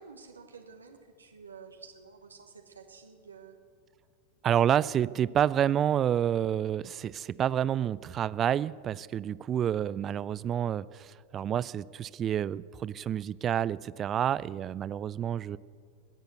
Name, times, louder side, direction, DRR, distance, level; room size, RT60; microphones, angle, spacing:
voice 1, 0.0-3.6, right 5 dB, 75° right, 4 dB, 1.3 m, -50 dB
voice 2, 4.4-15.6, right 10 dB, 25° right, 20 dB, 0.3 m, -29 dB
21.0 x 8.1 x 8.0 m, 2.1 s
figure-of-eight pair, 90°, 0 cm